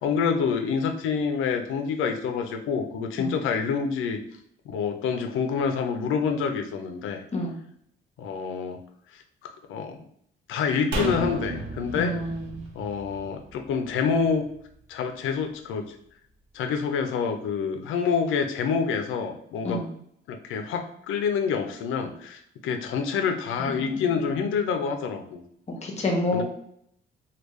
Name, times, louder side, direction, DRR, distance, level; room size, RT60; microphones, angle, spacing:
voice 1, 0.0-4.2 4.7-7.2 8.2-8.8 9.1-10.0 10.5-12.1 12.7-14.4 14.9-16.0 16.5-19.8 20.3-25.4 26.3-26.4, left 6 dB, 85° left, 6 dB, 0.5 m, -27 dB
sound 1, 10.9-14.3 14.6-14.7, right 1 dB, 80° right, 0.7 m, -33 dB
voice 2, 11.9-12.6 19.6-19.9 23.6-24.0 25.8-26.4, left 1 dB, 35° left, 1 dB, 0.9 m, -28 dB
3.4 x 2.3 x 3.1 m, 0.70 s
cardioid pair, 90°, 20 cm